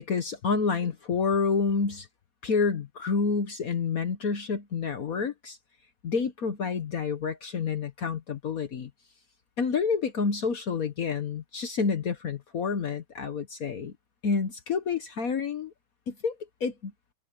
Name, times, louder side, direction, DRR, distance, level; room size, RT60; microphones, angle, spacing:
voice 1, 0.0-2.1 2.4-5.6 6.0-8.9 9.6-13.9 14.2-15.7 16.1-16.9, left 5 dB, 55° left, 1.5 m, -29 dB
omnidirectional pair, 1.9 m